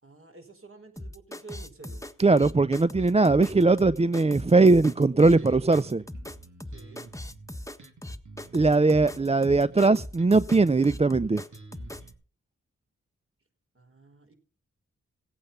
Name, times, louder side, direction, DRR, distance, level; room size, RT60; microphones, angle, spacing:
voice 1, 0.0-2.1 5.3-5.7 6.7-7.1 13.7-14.3, right 4 dB, 45° right, 4.8 m, -49 dB
sound 1, 1.0-12.1, left 1 dB, 10° left, 1.4 m, -40 dB
voice 2, 2.2-6.0 8.5-11.4, right 3 dB, 20° right, 0.5 m, -20 dB
Bass guitar, 2.9-12.1, right 4 dB, 70° right, 3.0 m, -50 dB
17.0 x 8.7 x 5.6 m
cardioid pair, 40°, 31 cm